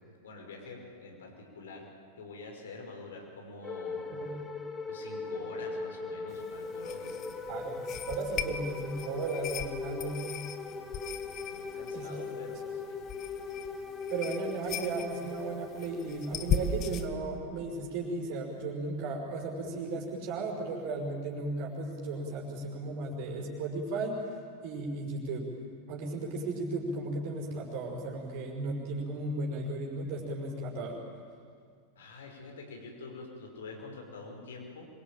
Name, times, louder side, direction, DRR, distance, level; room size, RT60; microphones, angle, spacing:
voice 1, 0.0-1.9 2.2-4.3 4.9-7.3 11.4-13.0 32.0-34.9, left 3 dB, 65° left, 2 dB, 5.7 m, -46 dB
sound 1, 3.6-19.3, left 4 dB, 15° left, 2.2 m, -40 dB
sound 2, 6.3-17.1, left 7 dB, 35° left, 1.6 m, -38 dB
voice 2, 7.5-7.8 8.1-10.3 11.9-12.1 14.1-24.2 24.6-25.5 25.9-31.0, right 2 dB, 45° right, 0 dB, 5.9 m, -35 dB
26.5 x 23.5 x 9.1 m, 2.1 s
figure-of-eight pair, 90°, 0 cm